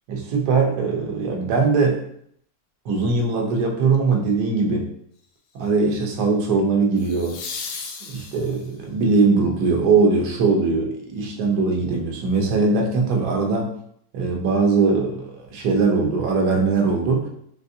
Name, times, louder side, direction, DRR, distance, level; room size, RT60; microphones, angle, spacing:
voice 1, 0.1-2.0 2.9-4.9 5.5-7.4 8.1-13.7 14.1-17.3, right 4 dB, 70° right, 1 dB, 1.2 m, -21 dB
sound 1, 3.9-4.3 7.0-8.8 11.7-11.8, left 5 dB, 80° left, 1.2 m, -35 dB
4.1 x 2.6 x 2.6 m, 0.68 s
omnidirectional pair, 1.8 m